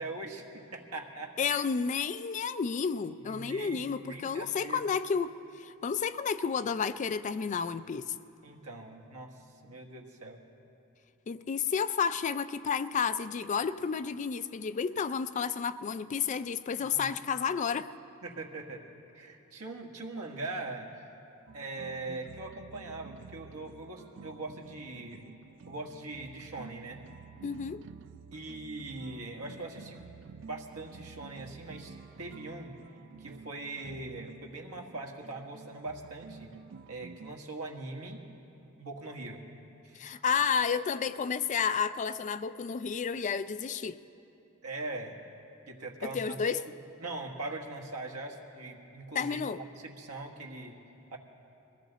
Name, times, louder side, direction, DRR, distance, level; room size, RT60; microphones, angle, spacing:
voice 1, 0.0-1.6 3.2-4.8 8.4-9.3 9.6-10.4 16.8-17.1 18.2-18.8 19.1-21.1 21.5-25.3 25.7-27.0 28.3-30.1 30.4-32.8 33.2-36.5 36.9-38.2 38.8-39.4 39.8-40.2 44.6-45.2 45.7-46.4 47.0-50.8 51.1-51.2, right 2 dB, 80° right, 1 dB, 1.6 m, -41 dB
voice 2, 1.4-8.1 11.3-17.9 27.4-27.8 40.0-44.0 46.0-46.6 49.1-49.6, left 6 dB, 35° left, 13 dB, 0.3 m, -31 dB
sound 1, 21.5-37.4, right 5 dB, 55° right, 0.3 m, -50 dB
22.0 x 16.0 x 4.0 m, 3.0 s
head